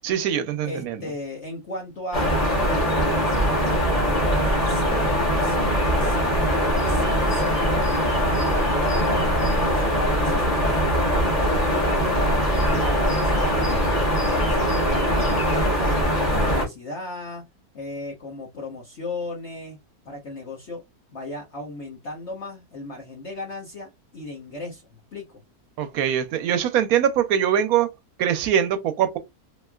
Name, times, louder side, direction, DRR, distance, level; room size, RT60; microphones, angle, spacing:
voice 1, 0.0-1.0 25.8-27.9 28.2-29.2, right 9 dB, 75° right, 1.0 m, -22 dB
voice 2, 0.6-3.8 4.3-7.6 8.7-10.9 11.4-13.9 14.4-15.2 15.4-17.5 17.7-19.8 20.0-20.8 21.1-25.4, left 2 dB, 50° left, 1.1 m, -36 dB
sound 1, 2.1-16.7, equal, 25° left, 1.1 m, -21 dB
3.3 x 3.1 x 2.3 m
omnidirectional pair, 1.6 m